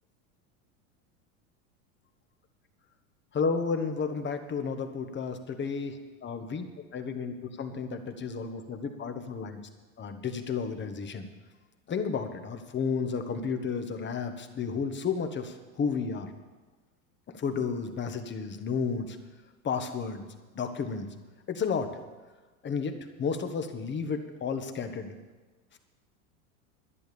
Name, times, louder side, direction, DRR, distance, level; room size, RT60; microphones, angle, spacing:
voice 1, 3.3-6.7 6.9-9.6 10.0-11.3 11.9-16.3 17.3-19.2 19.6-20.2 20.5-21.1 21.5-21.9 22.6-25.1, left 5 dB, 25° left, 7 dB, 1.4 m, -32 dB
11.5 x 10.5 x 7.0 m, 1.3 s
hypercardioid pair, 105°, 41 cm